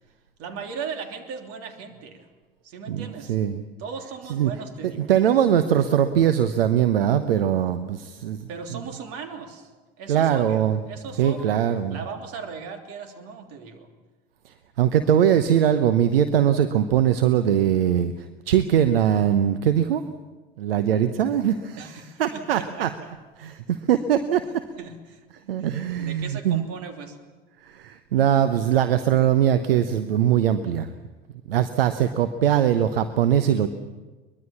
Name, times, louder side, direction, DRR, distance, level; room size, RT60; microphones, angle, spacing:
voice 1, 0.4-2.3 2.6-3.4 3.8-5.1 8.5-9.7 10.0-13.9 21.8-23.1 24.8-25.2 25.6-25.7 26.0-27.2, right 5 dB, 55° right, 4 dB, 3.2 m, -38 dB
voice 2, 2.9-3.6 4.3-4.5 5.0-8.5 10.1-10.8 11.2-12.0 14.5-18.1 18.5-20.0 20.6-21.8 22.2-22.9 23.4-24.6 25.5-26.7 27.6-30.9 31.5-33.7, right 10 dB, 75° right, 11 dB, 1.0 m, -21 dB
23.0 x 21.5 x 7.2 m, 1.2 s
figure-of-eight pair, 70°, 29 cm